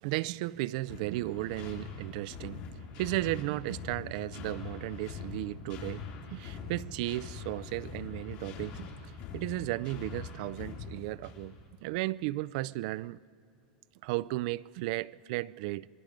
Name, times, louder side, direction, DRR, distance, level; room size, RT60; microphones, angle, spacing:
voice 1, 0.0-2.6 3.0-6.0 6.3-8.9 9.3-11.6 11.8-13.2 14.0-15.9, right 18 dB, 60° right, 0.4 m, -34 dB
sound 1, 0.9-11.6, left 6 dB, 60° left, 3.7 m, -43 dB
26.5 x 21.0 x 5.1 m
supercardioid pair, 145°, 4 cm